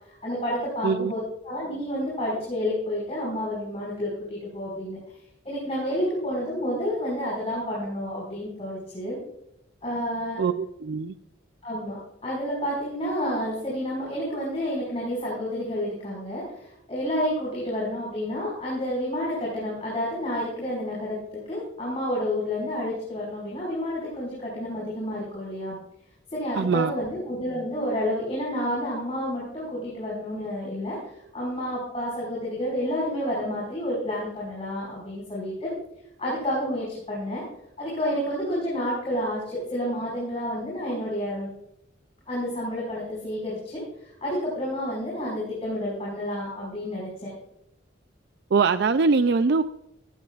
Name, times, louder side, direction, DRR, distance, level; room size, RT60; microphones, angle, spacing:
voice 1, 0.2-5.0 5.4-9.2 9.8-10.4 11.6-12.0 12.2-25.8 26.3-31.0 31.3-35.7 36.2-37.4 37.8-41.5 42.3-43.8 44.2-47.3, equal, 35° left, 5.2 m, -30 dB
voice 2, 10.4-11.1 26.6-26.9 48.5-49.6, right 4 dB, 60° right, 0.4 m, -22 dB
17.0 x 15.5 x 2.4 m
head